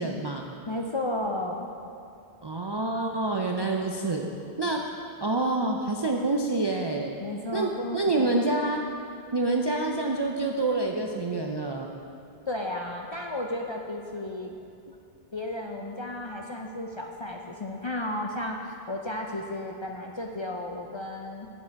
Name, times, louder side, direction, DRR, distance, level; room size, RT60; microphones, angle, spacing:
voice 1, 0.0-0.5 2.4-4.3 4.6-4.8 5.2-7.1 7.5-8.8 9.3-11.9, right 2 dB, 45° right, 0 dB, 0.3 m, -27 dB
voice 2, 0.7-1.7 7.2-8.4 12.5-14.6 15.3-21.5, left 1 dB, 40° left, 1 dB, 0.4 m, -33 dB
8.7 x 7.0 x 4.6 m, 2.6 s
omnidirectional pair, 1.0 m